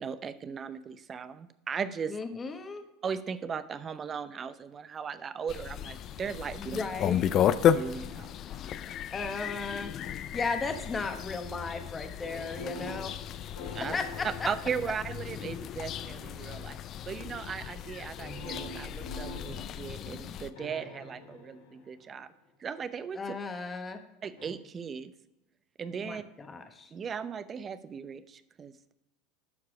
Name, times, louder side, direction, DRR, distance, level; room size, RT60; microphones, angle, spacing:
voice 1, 0.0-2.2 3.0-6.8 7.7-8.3 13.7-14.0 14.4-16.8 17.1-22.3 22.6-23.2 24.2-25.1 25.8-26.2 26.9-28.9, right 6 dB, 30° right, 13 dB, 0.7 m, -37 dB
voice 2, 2.1-2.8 6.6-7.2 9.1-13.1 13.9-14.3 23.1-24.0 26.0-26.9, left 4 dB, 25° left, 6 dB, 1.2 m, -35 dB
sound 1, 5.5-20.5, left 9 dB, 45° left, 0.5 m, -33 dB
sound 2, 12.2-15.6 16.3-16.8 18.2-22.3 24.4-24.5, left 1 dB, 75° left, 2.6 m, -45 dB
12.5 x 4.7 x 4.9 m, 0.92 s
hypercardioid pair, 80°, 0 cm